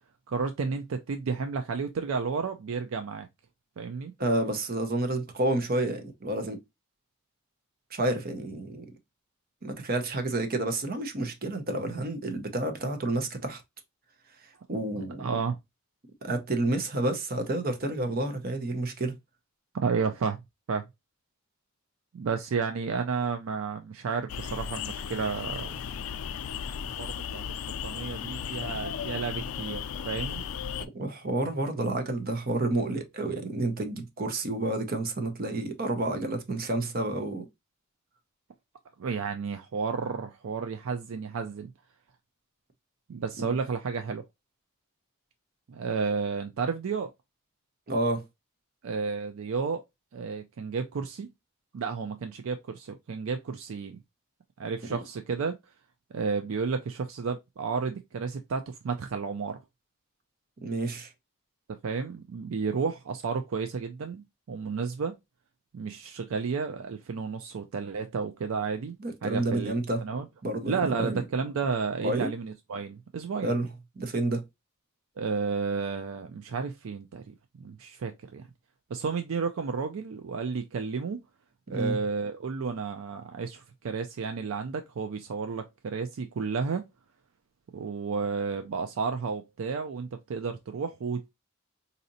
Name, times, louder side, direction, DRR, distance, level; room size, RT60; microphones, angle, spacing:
voice 1, 0.3-3.3 3.8-4.1 15.0-15.6 19.8-20.4 20.7-20.8 22.1-25.7 27.0-27.4 27.8-30.4 39.0-41.7 43.1-44.2 45.7-47.1 48.8-49.8 50.1-51.3 51.7-54.0 54.6-55.6 56.1-59.6 61.7-65.1 65.7-68.9 69.2-69.7 70.0-70.3 70.7-73.5 75.2-78.4 78.9-81.2 81.7-86.9 87.7-91.3, right 5 dB, 75° right, 0.4 m, -32 dB
voice 2, 4.2-6.6 7.9-8.9 9.6-13.6 14.7-15.3 16.2-19.1 30.9-37.5 43.4-43.5 47.9-48.2 54.9-55.0 60.6-61.1 69.0-70.0 70.4-71.2 72.0-72.3 73.4-73.7 74.0-74.4 81.7-82.0, right 2 dB, 45° right, 0.7 m, -29 dB
sound 1, 24.3-30.9, left 7 dB, 85° left, 0.4 m, -35 dB
4.1 x 2.7 x 2.6 m
head